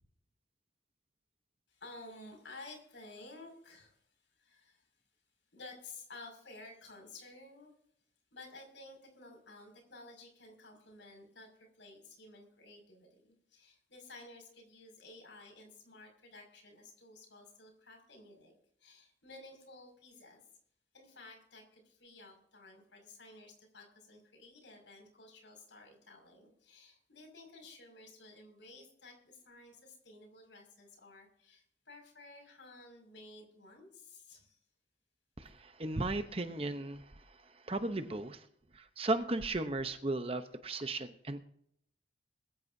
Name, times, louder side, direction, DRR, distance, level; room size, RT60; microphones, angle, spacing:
voice 1, 1.7-4.9 5.5-7.7 8.3-18.5 18.8-20.5 20.9-34.6, left 2 dB, 80° left, 2 dB, 6.1 m, -54 dB
voice 2, 35.4-38.5 38.7-41.4, right 2 dB, 30° right, 9 dB, 0.8 m, -36 dB
21.5 x 14.5 x 2.7 m, 0.69 s
head